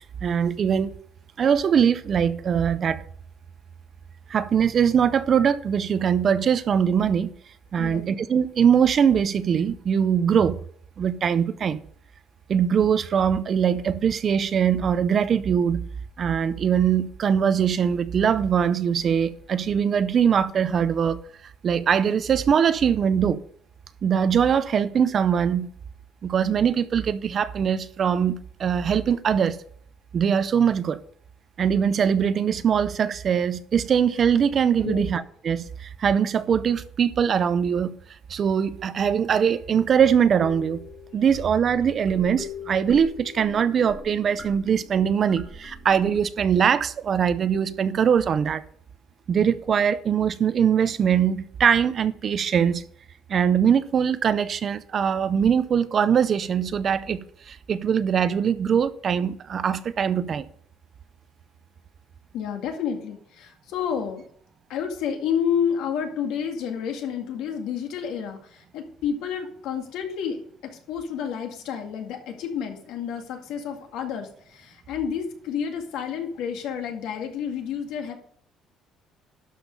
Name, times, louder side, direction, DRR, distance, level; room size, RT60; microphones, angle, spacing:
voice 1, 0.2-0.9 1.4-3.0 4.3-7.3 7.7-10.6 11.0-11.8 12.5-15.8 16.2-21.2 21.6-23.4 24.0-25.7 26.2-29.6 30.1-31.0 31.6-37.9 38.3-40.8 41.1-48.6 49.3-52.8 53.3-60.5, right 7 dB, 35° right, 0.5 m, -22 dB
sound 1, 40.4-46.2, left 4 dB, 20° left, 2.9 m, -42 dB
voice 2, 62.3-64.2 64.7-78.2, left 7 dB, 75° left, 2.0 m, -30 dB
12.0 x 5.5 x 5.3 m
cardioid pair, 175°, 0 cm